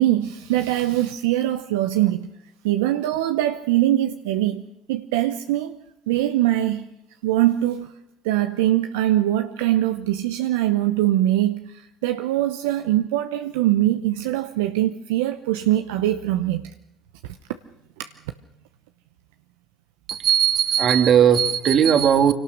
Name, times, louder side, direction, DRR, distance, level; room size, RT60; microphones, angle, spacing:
voice 1, 0.0-2.3 2.6-4.6 4.9-5.8 6.1-6.9 7.2-7.9 8.2-16.7 17.2-17.4 18.0-18.1, right 13 dB, 80° right, 0.8 m, -22 dB
voice 2, 20.1-22.3, right 8 dB, 55° right, 2.1 m, -17 dB
26.0 x 18.0 x 6.5 m
hypercardioid pair, 60°, 0 cm